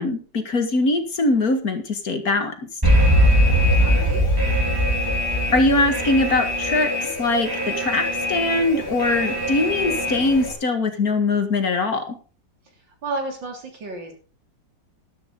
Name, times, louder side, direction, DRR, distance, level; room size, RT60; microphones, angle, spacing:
voice 1, 0.0-2.5 5.5-8.0 8.3-12.2, left 2 dB, 50° left, 6 dB, 2.2 m, -22 dB
Alarm, 2.8-10.5, equal, 10° right, 3.8 m, -21 dB
voice 2, 3.5-4.3 13.0-14.1, right 2 dB, 70° right, 2 dB, 4.1 m, -32 dB
13.5 x 12.5 x 3.9 m, 0.36 s
omnidirectional pair, 2.1 m